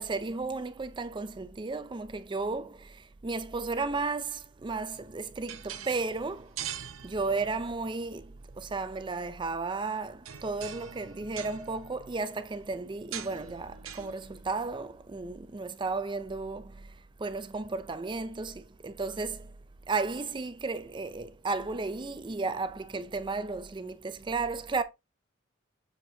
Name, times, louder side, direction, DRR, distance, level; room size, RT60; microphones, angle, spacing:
voice 1, 0.0-19.5 19.9-24.8, right 3 dB, 25° right, 0.4 m, -34 dB
sound 1, 4.9-16.3, right 9 dB, 85° right, 0.8 m, -45 dB
7.3 x 4.9 x 2.6 m
head